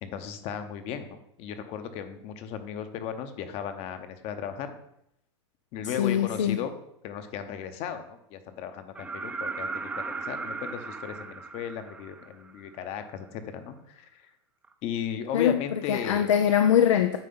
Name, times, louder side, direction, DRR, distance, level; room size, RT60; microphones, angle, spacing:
voice 1, 0.0-4.8 5.7-6.8 7.0-14.3 14.8-16.3, left 8 dB, 40° left, 9 dB, 0.9 m, -36 dB
voice 2, 6.0-6.6 15.3-15.6 15.9-17.2, left 9 dB, 90° left, 8 dB, 0.6 m, -22 dB
sound 1, 8.9-12.7 14.6-14.7, right 4 dB, 10° right, 0.5 m, -36 dB
9.1 x 3.4 x 5.5 m, 0.77 s
hypercardioid pair, 130°, 15 cm